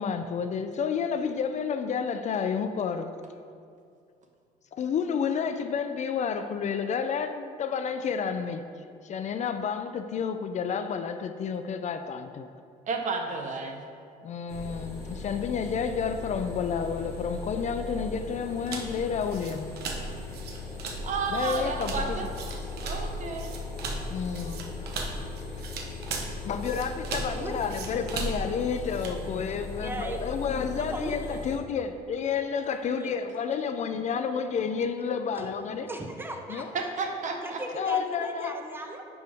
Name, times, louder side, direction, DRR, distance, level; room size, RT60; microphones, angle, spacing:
voice 1, 0.0-3.1 4.7-12.5 14.2-19.8 21.3-22.3 24.1-24.9 26.4-35.9 36.5-36.7 37.8-38.5, left 6 dB, 45° left, 8 dB, 0.4 m, -30 dB
voice 2, 12.9-13.8 21.0-22.2 22.8-23.5 36.7-37.6, right 4 dB, 45° right, 3 dB, 0.9 m, -31 dB
sound 1, 14.5-31.6, left 4 dB, 15° left, 1.6 m, -38 dB
sound 2, 18.7-29.2, right 4 dB, 70° right, 0.9 m, -37 dB
voice 3, 29.8-30.3 30.6-31.4 32.7-33.1 35.4-35.5 35.9-36.9 37.4-39.1, right 2 dB, 15° right, 3 dB, 0.8 m, -38 dB
10.0 x 4.7 x 3.4 m, 2.3 s
cardioid pair, 110°, 17 cm